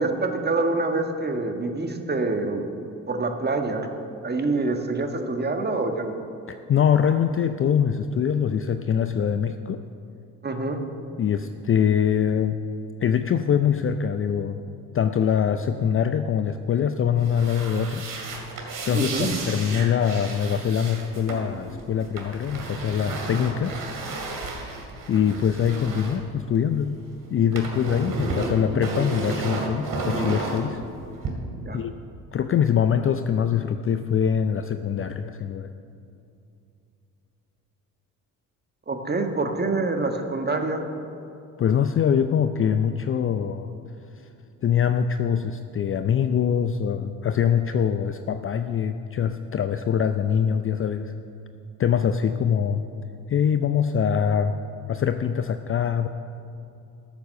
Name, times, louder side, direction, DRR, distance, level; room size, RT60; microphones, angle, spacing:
voice 1, 0.0-2.7 3.1-3.9 4.2-6.2 10.4-10.8 18.9-19.4 31.6-31.8 38.9-40.9, right 3 dB, 20° right, 4 dB, 1.6 m, -26 dB
voice 2, 6.5-9.8 11.2-12.6 13.0-14.6 14.9-18.1 18.9-23.8 25.1-27.0 27.3-30.8 31.7-31.9 32.3-35.7 41.6-43.8 44.6-51.1 51.8-52.8 53.3-54.5 54.9-56.1, left 8 dB, 30° left, 9 dB, 0.5 m, -23 dB
sound 1, 17.2-27.0 27.2-31.3, right 3 dB, 45° right, 2.6 m, -33 dB
13.5 x 7.0 x 6.6 m, 2.6 s
hypercardioid pair, 55°, 44 cm